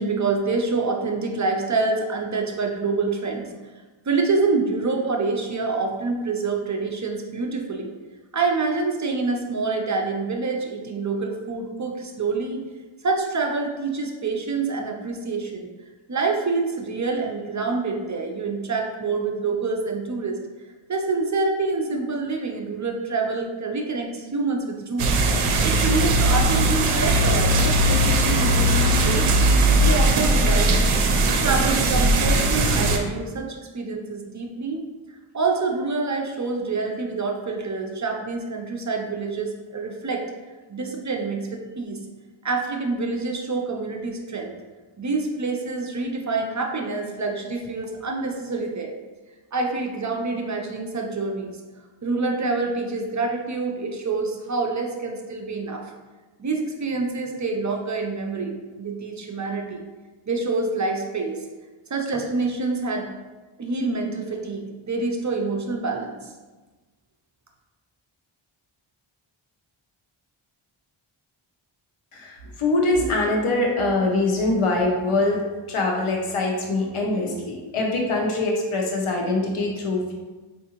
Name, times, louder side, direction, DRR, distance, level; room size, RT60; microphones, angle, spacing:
voice 1, 0.0-3.5 4.1-7.9 8.3-12.6 13.0-15.7 16.1-20.4 20.9-25.2 25.6-29.3 29.8-31.0 31.4-34.8 35.3-40.2 40.7-42.0 42.4-44.5 45.0-48.9 49.5-51.6 52.0-55.9 56.4-59.8 60.3-61.4 61.9-63.1 63.6-66.3, right 3 dB, 35° right, 1 dB, 0.5 m, -26 dB
sound 1, 25.0-33.0, right 1 dB, 85° right, 0.6 m, -19 dB
voice 2, 72.1-80.1, left 2 dB, 85° left, 0 dB, 0.8 m, -23 dB
4.6 x 2.5 x 2.9 m, 1.3 s
wide cardioid pair, 70°, 49 cm